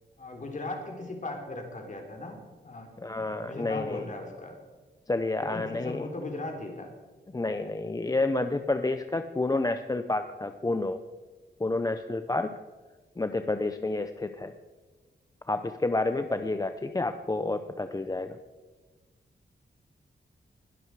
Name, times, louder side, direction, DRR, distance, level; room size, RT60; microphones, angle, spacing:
voice 1, 0.2-4.5 5.4-6.9, left 2 dB, 40° left, 2 dB, 3.3 m, -38 dB
voice 2, 3.0-4.0 5.1-6.1 7.3-11.0 11.6-12.5 13.2-14.5 15.5-18.4, left 2 dB, 20° left, 8 dB, 0.7 m, -29 dB
21.0 x 11.5 x 4.8 m, 1.3 s
wide cardioid pair, 110°, 19 cm